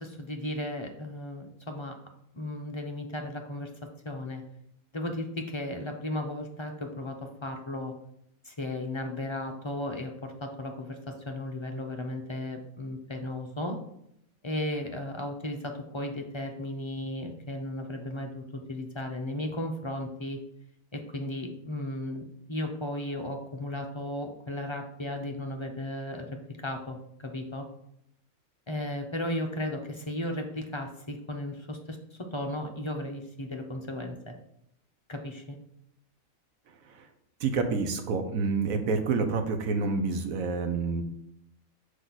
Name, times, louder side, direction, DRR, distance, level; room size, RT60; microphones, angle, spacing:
voice 1, 0.0-2.0 2.3-3.7 4.0-4.4 4.9-7.9 8.4-13.8 14.4-20.4 20.9-26.3 26.6-27.7 28.7-34.3 35.1-35.6, left 1 dB, 30° left, 3 dB, 0.5 m, -35 dB
voice 2, 37.4-41.0, right 4 dB, 75° right, 6 dB, 1.3 m, -28 dB
6.2 x 5.1 x 4.1 m, 0.74 s
omnidirectional pair, 1.5 m